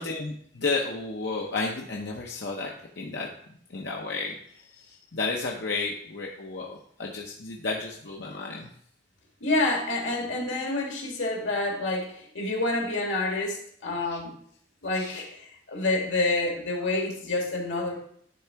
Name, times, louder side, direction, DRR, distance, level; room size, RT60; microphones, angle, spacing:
voice 1, 0.0-3.3 3.7-8.7 14.0-14.2 14.9-15.2, left 3 dB, 65° left, -1 dB, 0.8 m, -32 dB
voice 2, 9.4-14.4 14.8-18.0, left 2 dB, 90° left, 1 dB, 1.9 m, -28 dB
10.0 x 3.7 x 4.5 m, 0.64 s
head